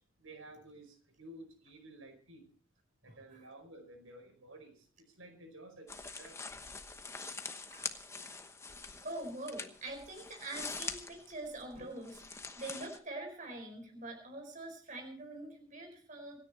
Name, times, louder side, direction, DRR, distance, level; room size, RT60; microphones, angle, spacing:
voice 1, 0.0-2.5 3.0-6.4, right 1 dB, 85° right, 5 dB, 4.8 m, -53 dB
voice 2, 3.0-3.5 7.7-7.9 9.0-16.4, right 2 dB, 40° right, 3 dB, 4.7 m, -44 dB
sound 1, 5.9-13.0, left 4 dB, 15° left, 1.0 m, -44 dB
26.5 x 9.9 x 4.2 m, 0.43 s
head